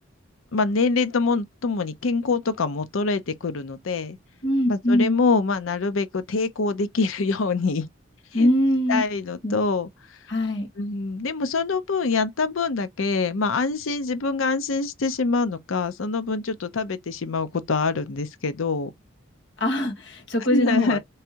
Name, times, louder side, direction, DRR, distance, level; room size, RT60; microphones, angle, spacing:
voice 1, 0.5-4.2 4.6-7.9 8.4-8.5 8.9-9.9 10.8-18.9 20.5-21.0, left 4 dB, 90° left, 0.6 m, -25 dB
voice 2, 4.4-5.2 8.3-9.0 9.4-9.6 10.3-10.7 19.6-21.0, left 1 dB, 65° left, 1.4 m, -22 dB
3.5 x 3.2 x 2.8 m
head